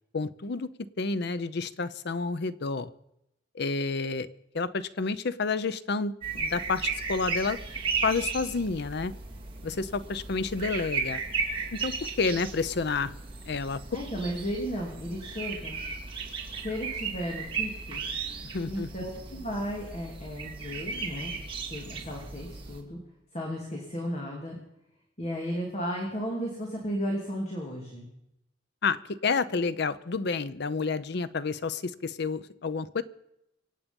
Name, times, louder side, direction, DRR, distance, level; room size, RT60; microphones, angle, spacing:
voice 1, 0.1-0.7 1.0-2.9 3.5-4.3 4.5-7.6 8.0-9.1 9.6-11.2 11.7-13.2 13.5-13.8 18.5-18.9 28.8-33.0, left 4 dB, 60° left, 15 dB, 0.7 m, -30 dB
sound 1, 6.2-22.8, right 5 dB, 30° right, 2.3 m, -35 dB
voice 2, 13.9-15.8 16.6-18.1 18.7-21.4 21.7-23.0 23.3-24.6 25.2-28.1, equal, 35° left, -1 dB, 2.7 m, -34 dB
25.0 x 8.6 x 5.3 m, 0.81 s
head